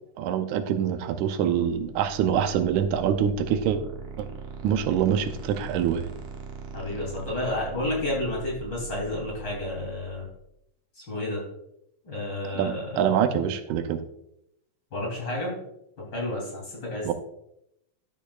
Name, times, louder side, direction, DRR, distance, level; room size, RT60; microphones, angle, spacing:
voice 1, 0.2-3.8 4.2-4.3 4.6-6.1 12.5-14.0 17.0-17.1, right 8 dB, 90° right, 8 dB, 2.1 m, -25 dB
sound 1, 1.6-10.4, right 5 dB, 65° right, 2.1 m, -41 dB
voice 2, 6.7-10.3 11.0-11.4 12.1-13.1 14.9-15.6 16.1-17.1, left 1 dB, 40° left, -3 dB, 3.7 m, -31 dB
12.0 x 7.1 x 2.4 m, 0.79 s
omnidirectional pair, 3.4 m